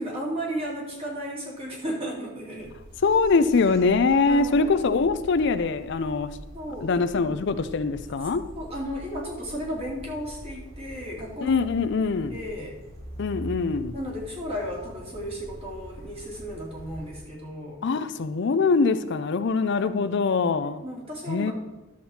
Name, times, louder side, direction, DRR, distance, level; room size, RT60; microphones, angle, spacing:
voice 1, 0.0-2.8 4.2-4.7 6.5-6.9 8.6-11.6 12.0-12.7 13.9-17.8 19.8-20.0 20.8-21.5, equal, 30° right, -2 dB, 2.5 m, -34 dB
sound 1, 2.6-17.1, equal, 65° right, 3.1 m, -43 dB
voice 2, 3.0-6.4 6.8-8.4 11.4-12.4 13.2-13.9 17.8-20.8 21.3-21.5, left 4 dB, 60° left, 11 dB, 0.5 m, -23 dB
11.0 x 7.3 x 4.3 m, 1.1 s
head